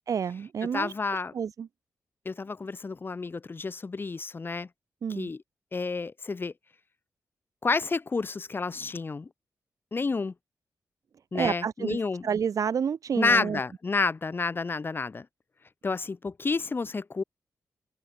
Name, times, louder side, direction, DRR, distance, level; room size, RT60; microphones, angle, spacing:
voice 1, 0.1-0.9 1.3-1.7 5.0-5.3 11.3-13.6, right 7 dB, 70° right, 2.5 m, -29 dB
voice 2, 0.7-1.3 2.2-4.7 5.1-5.4 5.7-6.5 7.6-9.3 9.9-10.3 11.3-12.3 13.2-15.3 15.8-17.2, left 4 dB, 35° left, 3.1 m, -30 dB
wide cardioid pair, 100°, 6 cm